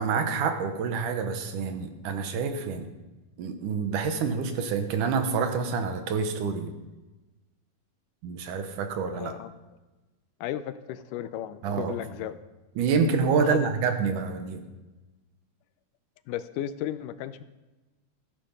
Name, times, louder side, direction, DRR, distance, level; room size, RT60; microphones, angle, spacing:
voice 1, 0.0-2.9 3.4-6.8 8.2-9.3 11.6-11.9 12.8-14.6, right 5 dB, 80° right, 7 dB, 2.6 m, -27 dB
voice 2, 9.2-9.5 10.4-12.4 13.3-13.6 16.3-17.4, left 11 dB, 80° left, 13 dB, 2.2 m, -34 dB
14.0 x 10.0 x 5.4 m, 1.1 s
omnidirectional pair, 3.7 m